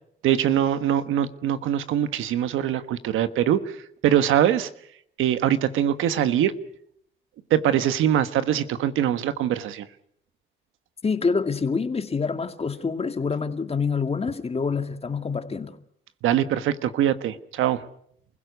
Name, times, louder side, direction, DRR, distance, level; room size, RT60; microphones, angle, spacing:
voice 1, 0.2-3.7 4.0-4.7 5.2-6.5 7.5-9.8 16.2-17.8, right 10 dB, 85° right, 1.4 m, -22 dB
voice 2, 11.0-15.8, left 5 dB, 30° left, 2.1 m, -26 dB
28.5 x 16.5 x 8.1 m
cardioid pair, 90°, 20 cm